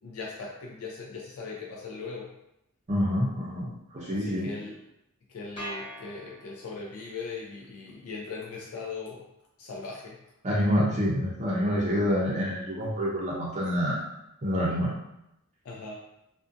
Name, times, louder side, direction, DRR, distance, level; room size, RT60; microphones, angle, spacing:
voice 1, 0.0-2.3 4.1-4.8 5.3-9.3 9.6-10.2 15.6-16.0, left 4 dB, 70° left, -2 dB, 0.4 m, -39 dB
voice 2, 2.9-4.5 10.4-14.0 14.4-14.9, equal, 30° right, -5 dB, 0.5 m, -27 dB
sound 1, 5.6-6.9, equal, 25° left, 0.9 m, -41 dB
2.5 x 2.1 x 2.5 m, 0.84 s
head